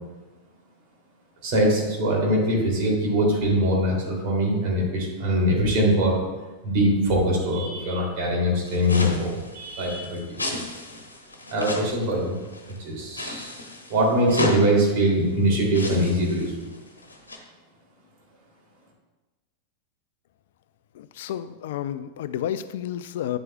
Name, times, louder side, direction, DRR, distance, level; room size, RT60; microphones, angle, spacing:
voice 1, 1.4-6.2 6.6-10.6 11.5-12.4 12.8-13.5 13.9-16.7, equal, 45° right, -2 dB, 2.7 m, -22 dB
sound 1, 8.6-12.8 13.1-14.6 15.3-15.4 15.7-17.4, left 2 dB, 80° left, 1.1 m, -33 dB
voice 2, 20.9-23.4, left 10 dB, 55° left, 14 dB, 0.3 m, -31 dB
9.8 x 7.7 x 2.3 m, 1.2 s
figure-of-eight pair, 90°, 0 cm